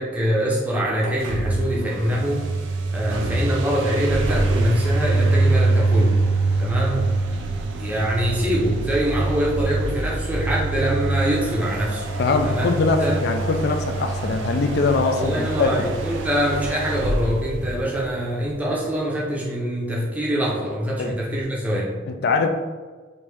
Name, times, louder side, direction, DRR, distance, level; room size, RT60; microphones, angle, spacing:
voice 1, 0.0-2.4 2.9-6.2 6.6-7.2 7.8-12.1 12.4-12.7 13.0-13.2 15.1-21.9, equal, 10° right, -5 dB, 0.6 m, -24 dB
sound 1, 1.0-18.5, right 2 dB, 70° right, 0.4 m, -24 dB
voice 2, 12.2-15.9 21.0-21.1 22.1-22.5, left 4 dB, 50° left, 6 dB, 0.3 m, -22 dB
3.2 x 2.6 x 3.2 m, 1.4 s
head